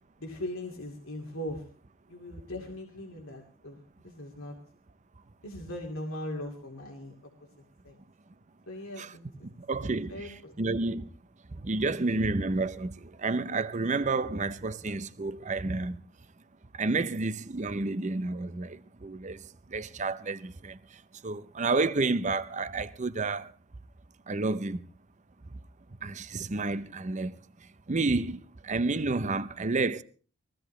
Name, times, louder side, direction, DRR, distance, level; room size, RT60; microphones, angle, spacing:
voice 1, 0.2-1.6 2.1-4.6 5.4-7.1 7.8-7.9 8.7-9.5 10.1-10.5, left 1 dB, 75° left, 2.4 m, -39 dB
voice 2, 9.4-11.1 11.6-16.0 16.8-19.4 19.7-20.8 21.2-23.5 24.3-24.8 26.0-27.4 27.9-30.0, right 3 dB, 35° right, 0.7 m, -30 dB
21.5 x 15.5 x 3.2 m
head